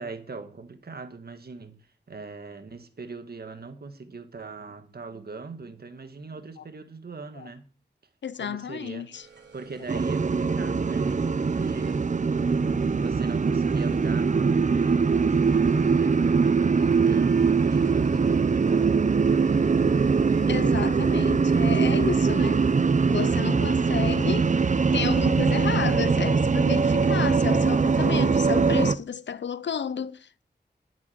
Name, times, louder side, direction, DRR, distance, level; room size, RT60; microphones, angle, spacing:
voice 1, 0.0-7.7 8.4-9.1 9.5-11.1 11.4-12.0 13.0-14.4 14.6-19.0, right 4 dB, 60° right, 1.8 m, -41 dB
voice 2, 8.2-9.3 20.5-22.7 23.1-24.5 24.9-30.4, left 7 dB, 85° left, 0.7 m, -32 dB
sound 1, 9.1-26.4, right 4 dB, 75° right, 4.0 m, -51 dB
sound 2, 9.9-29.0, right 5 dB, 45° right, 0.6 m, -22 dB
9.7 x 9.2 x 9.3 m
wide cardioid pair, 70°, 18 cm